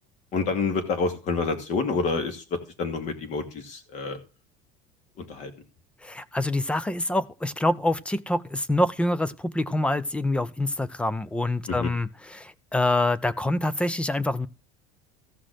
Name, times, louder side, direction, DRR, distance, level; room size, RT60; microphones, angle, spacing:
voice 1, 0.3-4.2 5.2-5.5 11.7-11.9, left 4 dB, 40° left, 2.6 m, -28 dB
voice 2, 6.0-14.5, left 1 dB, 5° left, 0.5 m, -26 dB
15.0 x 5.9 x 6.5 m
cardioid pair, 160°, 18 cm